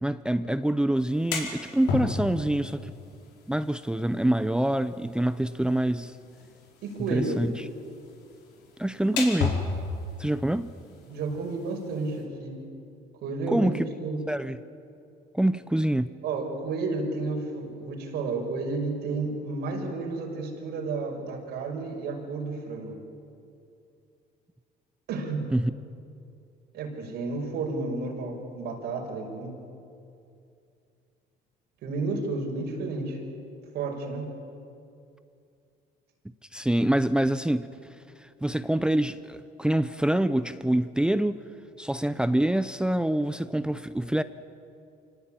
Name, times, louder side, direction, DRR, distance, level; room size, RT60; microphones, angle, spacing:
voice 1, 0.0-2.9 3.5-6.2 7.1-7.6 8.8-9.6 10.2-10.7 13.5-13.9 14.3-14.6 15.3-16.1 25.5-25.7 36.5-37.7 38.2-41.4 41.8-44.2, right 1 dB, 5° right, 0.6 m, -25 dB
sound 1, 1.0-12.2, left 4 dB, 85° left, 4.8 m, -36 dB
voice 2, 6.8-7.4 11.0-12.5 13.2-14.2 16.2-23.0 25.1-25.5 26.7-29.6 31.8-33.2 33.7-34.3, right 3 dB, 80° right, 5.9 m, -31 dB
26.5 x 19.0 x 8.9 m
cardioid pair, 110°, 17 cm